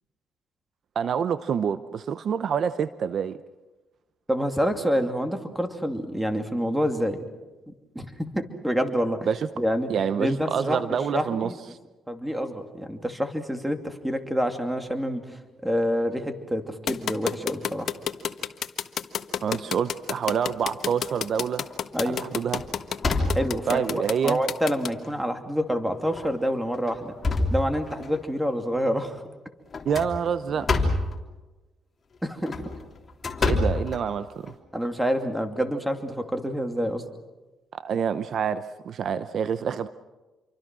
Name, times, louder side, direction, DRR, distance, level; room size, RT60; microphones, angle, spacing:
voice 1, 0.9-3.4 9.3-9.5 9.9-11.5 19.4-21.6 22.0-22.6 23.7-24.4 29.8-30.7 33.4-34.5 37.7-39.9, right 7 dB, 60° right, 13 dB, 0.8 m, -27 dB
voice 2, 4.3-7.2 7.9-9.3 9.6-9.9 10.2-10.8 11.1-11.5 12.1-17.9 21.9-22.3 23.3-27.1 27.5-29.2 32.2-32.5 34.7-37.0, equal, 5° right, 6 dB, 2.7 m, -27 dB
sound 1, 16.9-24.9, left 8 dB, 60° left, 1.4 m, -29 dB
sound 2, 20.6-21.1 21.6-21.8 22.2-23.8 24.5-24.6 25.0-25.1 26.0-26.3 26.7-28.2 29.7-31.2 32.3-34.5, left 2 dB, 35° left, 3.3 m, -27 dB
27.5 x 24.0 x 6.2 m, 1.2 s
cardioid pair, 90°, 0 cm